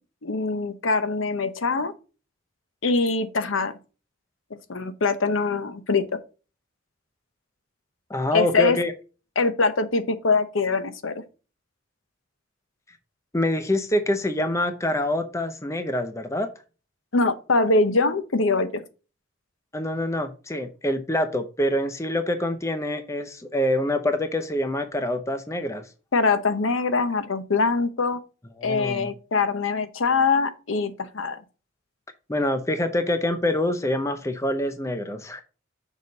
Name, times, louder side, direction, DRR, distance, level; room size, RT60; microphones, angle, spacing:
voice 1, 0.2-1.9 2.8-3.8 4.7-6.2 8.3-8.8 9.4-11.2 17.1-18.8 26.1-28.2 28.6-31.4, left 3 dB, 85° left, 0.9 m, -23 dB
voice 2, 8.1-8.9 13.3-16.5 19.7-25.9 28.6-29.1 32.3-35.4, left 1 dB, 15° left, 0.7 m, -26 dB
6.5 x 5.1 x 4.0 m
head